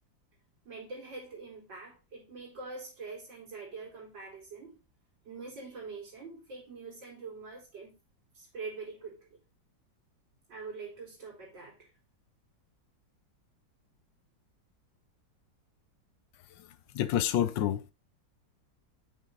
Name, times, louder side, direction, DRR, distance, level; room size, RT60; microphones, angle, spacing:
voice 1, 0.6-4.8 5.2-8.0 8.3-9.4 10.5-11.9, right 4 dB, 75° right, 4.5 m, -44 dB
voice 2, 16.6-17.9, left 11 dB, 80° left, 1.4 m, -29 dB
7.0 x 6.1 x 3.9 m
omnidirectional pair, 2.0 m